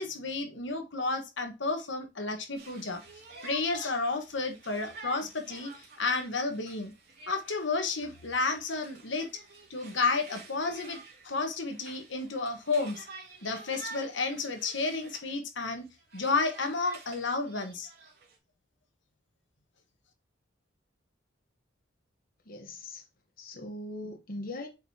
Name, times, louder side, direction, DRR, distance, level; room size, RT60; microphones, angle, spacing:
voice 1, 0.0-3.0 3.4-5.7 6.0-6.9 7.3-9.3 9.7-11.0 11.2-13.1 13.4-15.9 16.1-17.9, left 3 dB, 70° left, 1.3 m, -31 dB
Conversation, 2.6-15.3 15.7-18.4, right 4 dB, 60° right, 2.3 m, -50 dB
voice 2, 22.5-23.0 23.4-24.7, left 1 dB, 50° left, 1.1 m, -40 dB
7.8 x 4.7 x 2.8 m
head